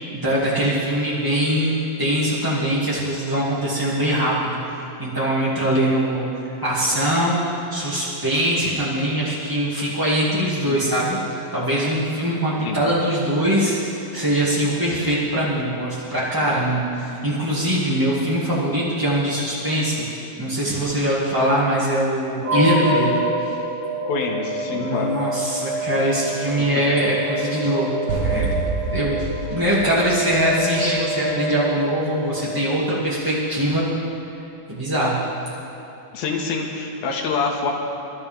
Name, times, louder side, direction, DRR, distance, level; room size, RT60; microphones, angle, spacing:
voice 1, 0.1-6.3 6.6-7.4 7.7-23.6 24.7-27.9 28.1-28.5 28.9-33.8 34.7-35.5, right 1 dB, 10° right, -8 dB, 1.2 m, -22 dB
sound 1, 22.4-33.0, equal, 40° right, 2.7 m, -28 dB
voice 2, 24.1-25.2 26.6-26.7 36.1-37.7, left 4 dB, 80° left, 0 dB, 3.4 m, -26 dB
sound 2, 28.1-31.1, right 4 dB, 85° right, 3.1 m, -27 dB
27.5 x 13.0 x 3.5 m, 2.9 s
omnidirectional pair, 4.3 m